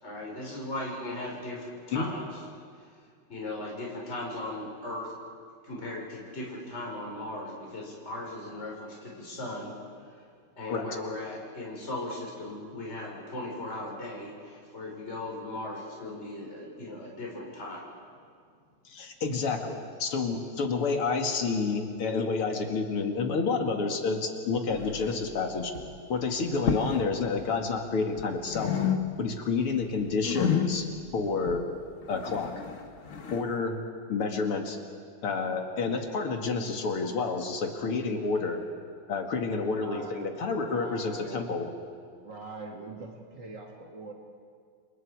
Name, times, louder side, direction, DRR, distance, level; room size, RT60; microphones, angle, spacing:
voice 1, 0.0-2.2 3.3-5.1 5.6-9.7 10.6-17.9, left 2 dB, 30° left, -3 dB, 4.9 m, -38 dB
voice 2, 18.9-25.7 26.1-28.7 29.2-30.9 31.1-31.6 32.1-32.5 33.3-33.8 34.1-34.8 35.2-38.6 39.1-41.7, left 4 dB, 90° left, 3 dB, 3.0 m, -29 dB
sound 1, 24.7-25.4 25.6-26.0 26.5-27.1 27.4-28.3 28.5-29.5 29.8-33.5, left 8 dB, 45° left, 1.2 m, -31 dB
voice 3, 39.7-41.6 42.1-44.1, right 3 dB, 55° right, 0 dB, 2.7 m, -43 dB
29.5 x 27.5 x 4.8 m, 2.1 s
omnidirectional pair, 2.4 m